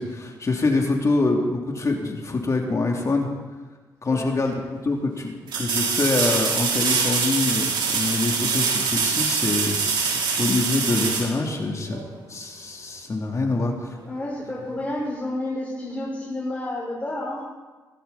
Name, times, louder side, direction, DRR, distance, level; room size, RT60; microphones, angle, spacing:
voice 1, 0.0-3.3 4.0-4.5 4.8-12.0 12.3-13.9, left 3 dB, 40° left, 1 dB, 3.0 m, -25 dB
sound 1, 4.1-4.2 5.5-12.1 14.9-15.0, right 5 dB, 80° right, 3.8 m, -24 dB
voice 2, 14.1-17.6, left 1 dB, 20° left, -5 dB, 5.2 m, -30 dB
17.5 x 17.5 x 4.3 m, 1.3 s
cardioid pair, 65°, 8 cm